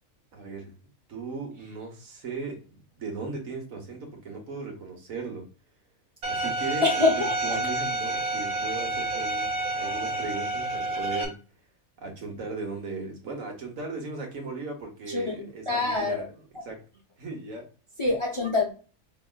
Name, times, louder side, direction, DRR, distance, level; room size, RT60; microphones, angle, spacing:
voice 1, 0.3-0.7 1.1-5.5 6.3-11.4 12.0-16.2 16.6-16.8 17.2-17.7, right 3 dB, 65° right, 2 dB, 1.4 m, -37 dB
Bowed string instrument, 6.2-11.2, right 2 dB, 80° right, 1.5 m, -29 dB
voice 2, 6.8-7.6 15.1-16.2 18.0-18.7, left 3 dB, 30° left, -1 dB, 0.7 m, -26 dB
4.7 x 3.3 x 2.3 m, 0.37 s
omnidirectional pair, 1.5 m